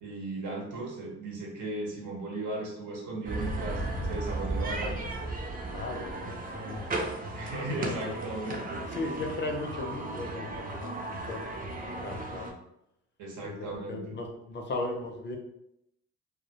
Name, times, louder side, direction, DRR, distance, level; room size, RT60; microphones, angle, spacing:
voice 1, 0.0-5.0 7.3-8.8 13.2-14.2, right 2 dB, 75° right, -2 dB, 0.9 m, -36 dB
sound 1, 3.2-12.5, right 2 dB, 30° right, 0.4 m, -35 dB
voice 2, 5.7-7.0 7.8-8.2 8.9-11.0 11.3-11.5 11.8-12.6 13.4-15.4, left 2 dB, 40° left, 3 dB, 0.5 m, -37 dB
2.2 x 2.0 x 2.8 m, 0.81 s
cardioid pair, 90°, 30 cm